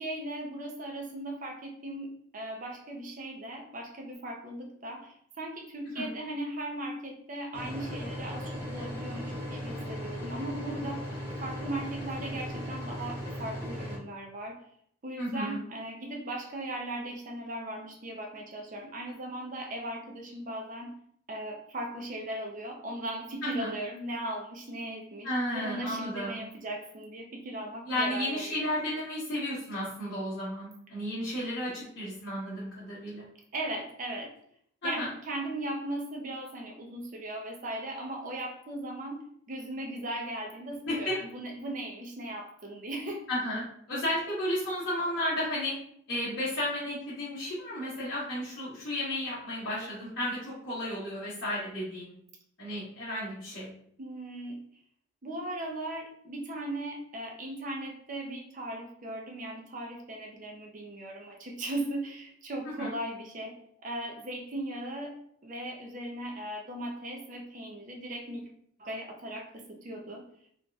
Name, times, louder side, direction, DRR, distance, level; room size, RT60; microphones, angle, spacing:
voice 1, 0.0-11.1 11.4-14.6 15.0-20.9 21.3-28.6 33.5-34.3 34.8-43.3 54.0-54.6 55.2-65.1 65.4-68.5 68.8-70.2, right 1 dB, 40° right, 1 dB, 0.6 m, -38 dB
sound 1, 7.5-14.0, equal, 10° left, 1.3 m, -37 dB
voice 2, 15.2-15.6 23.4-23.7 25.2-26.4 27.9-33.3 34.8-35.1 40.9-41.2 43.3-45.7 46.1-52.1 52.6-53.7 62.8-62.9, left 1 dB, 50° left, -11 dB, 1.3 m, -33 dB
3.9 x 2.4 x 2.4 m, 0.67 s
head